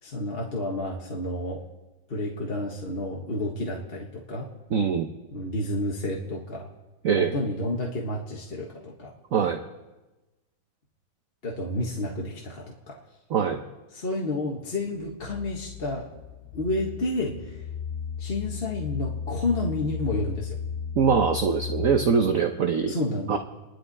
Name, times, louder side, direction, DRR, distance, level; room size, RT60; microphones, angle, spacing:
voice 1, 0.0-1.6 2.1-4.5 5.3-6.7 7.1-9.1 11.4-13.0 13.9-16.1 16.5-17.6 18.2-20.6 22.9-23.4, left 2 dB, 30° left, -2 dB, 1.6 m, -30 dB
voice 2, 4.7-5.1 7.0-7.3 9.3-9.6 13.3-13.6 21.0-22.9 23.3-23.4, right 6 dB, 55° right, 5 dB, 1.0 m, -23 dB
sound 1, 14.8-22.6, left 7 dB, 55° left, 1.3 m, -35 dB
29.0 x 11.5 x 4.2 m, 1.1 s
omnidirectional pair, 2.1 m